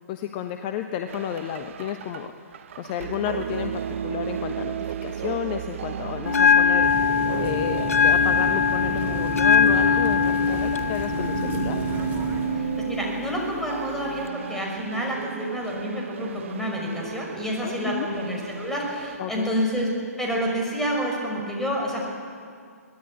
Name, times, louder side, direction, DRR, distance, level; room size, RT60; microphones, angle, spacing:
voice 1, 0.1-11.8 17.6-18.1 19.2-19.6, left 10 dB, 35° left, 7 dB, 1.1 m, -32 dB
sound 1, 1.1-19.2, right 8 dB, 50° right, 0.9 m, -33 dB
Bell, 6.3-14.3, left 6 dB, 65° left, 0.7 m, -22 dB
sound 2, 6.8-12.5, right 3 dB, 20° right, 3.0 m, -35 dB
voice 2, 12.5-19.9 20.2-22.0, equal, 5° left, -1 dB, 5.9 m, -29 dB
24.0 x 18.5 x 8.6 m, 2.2 s
figure-of-eight pair, 125°, 9 cm